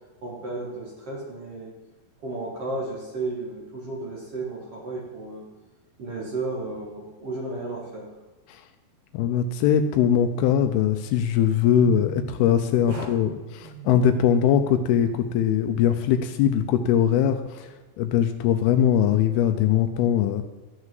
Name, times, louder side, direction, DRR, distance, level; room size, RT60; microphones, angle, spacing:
voice 1, 0.2-1.7 2.2-5.5 6.0-8.1 12.9-13.0, right 2 dB, 50° right, -3 dB, 2.0 m, -33 dB
voice 2, 9.1-13.3 13.8-20.4, left 9 dB, 80° left, 8 dB, 2.4 m, -21 dB
sound 1, 11.8-13.0 13.2-14.3, right 5 dB, 65° right, 3.5 m, -43 dB
13.0 x 6.2 x 7.5 m, 1.2 s
omnidirectional pair, 4.8 m